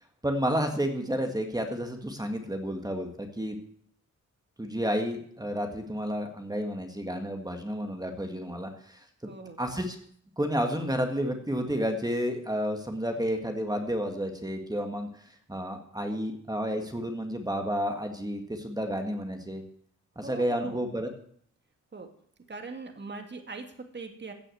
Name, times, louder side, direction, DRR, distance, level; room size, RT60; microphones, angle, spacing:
voice 1, 0.2-3.6 4.6-9.1 9.6-10.0 10.4-19.6 20.2-21.1, equal, 10° right, 4 dB, 1.9 m, -31 dB
voice 2, 9.2-9.6 20.2-20.8 21.9-22.1 22.5-24.3, right 4 dB, 35° right, 5 dB, 2.1 m, -41 dB
16.0 x 6.4 x 7.9 m, 0.62 s
cardioid pair, 85°, 31 cm